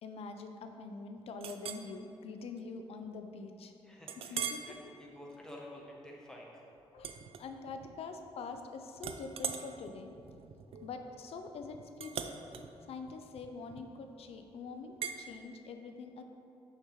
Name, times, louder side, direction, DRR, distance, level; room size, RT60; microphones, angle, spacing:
voice 1, 0.0-3.7 4.3-4.6 6.9-10.1 10.8-12.3 12.9-16.2, left 4 dB, 70° left, 6 dB, 0.5 m, -45 dB
Chink clink, 1.4-1.9 2.4-2.6 3.0-3.1 4.1-4.7 5.2-5.5 7.0-7.9 8.2-8.6 9.0-14.1 15.0-15.2, right 7 dB, 65° right, 0.4 m, -42 dB
voice 2, 3.8-6.7, left 1 dB, 5° left, -2 dB, 1.0 m, -50 dB
6.4 x 5.9 x 3.1 m, 2.7 s
cardioid pair, 125°, 11 cm